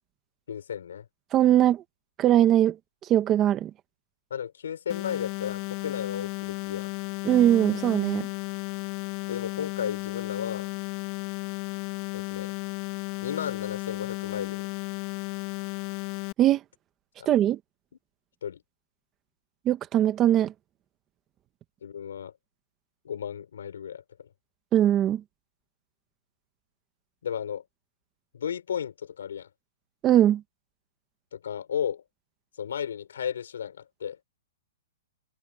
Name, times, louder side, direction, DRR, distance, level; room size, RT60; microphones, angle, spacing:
voice 1, 0.5-1.1 4.3-6.9 9.3-10.7 12.1-12.5 13.2-14.7 17.2-17.3 18.4-18.6 21.8-22.3 23.0-24.3 27.2-27.6 28.3-29.5 31.3-32.0 32.6-34.2, left 8 dB, 80° left, 5.4 m, -34 dB
voice 2, 1.3-1.8 2.2-2.8 3.0-3.7 7.2-8.3 16.4-16.6 17.2-17.6 19.6-20.5 24.7-25.2 30.0-30.4, right 12 dB, 20° right, 1.4 m, -21 dB
sound 1, 4.9-16.3, left 24 dB, 35° left, 2.0 m, -34 dB
hypercardioid pair, 160°, 0 cm